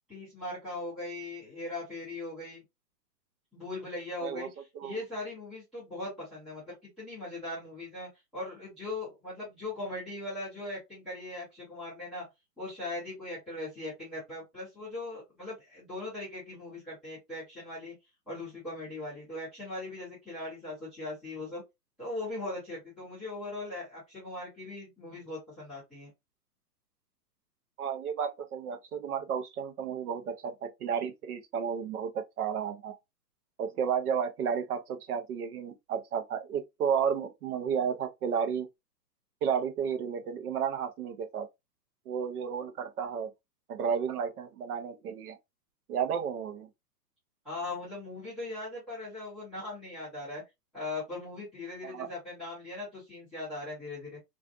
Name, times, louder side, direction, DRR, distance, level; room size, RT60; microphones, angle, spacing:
voice 1, 0.1-2.6 3.5-12.2 12.6-17.9 18.3-21.6 22.0-26.1 47.4-50.4 50.7-54.2, left 2 dB, ahead, 0.4 m, -39 dB
voice 2, 27.8-33.0 33.6-38.7 39.4-41.5 42.1-43.3 43.7-45.4 45.9-46.7 51.8-52.1, right 7 dB, 65° right, 0.6 m, -32 dB
2.4 x 2.4 x 2.4 m
hypercardioid pair, 130°, 49 cm